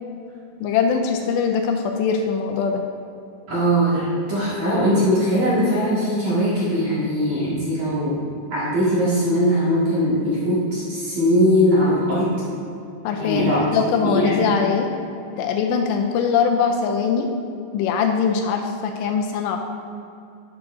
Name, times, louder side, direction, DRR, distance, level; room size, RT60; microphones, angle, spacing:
voice 1, 0.6-2.8 13.0-14.9 15.4-17.3 17.7-19.6, left 6 dB, 80° left, 3 dB, 2.6 m, -22 dB
voice 2, 3.5-8.2 8.5-12.3 13.2-13.6 14.0-14.4, equal, 50° right, -9 dB, 2.4 m, -20 dB
11.5 x 8.1 x 2.6 m, 2.7 s
omnidirectional pair, 5.2 m